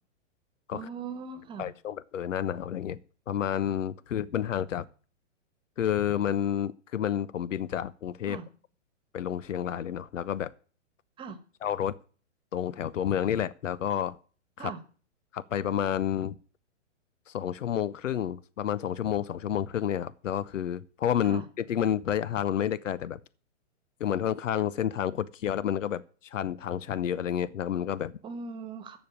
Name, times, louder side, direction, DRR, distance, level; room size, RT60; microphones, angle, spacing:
voice 1, 0.7-1.7 8.3-8.5 11.2-11.4 14.6-14.8 21.2-21.4 28.2-29.0, right 5 dB, 15° right, 1.3 m, -39 dB
voice 2, 1.6-3.0 3.3-4.9 5.8-8.4 9.1-10.5 11.6-11.9 12.5-14.2 14.6-14.7 15.3-16.4 17.3-23.2 24.0-28.1, left 9 dB, 85° left, 0.9 m, -30 dB
14.5 x 5.3 x 9.4 m
hypercardioid pair, 155°, 37 cm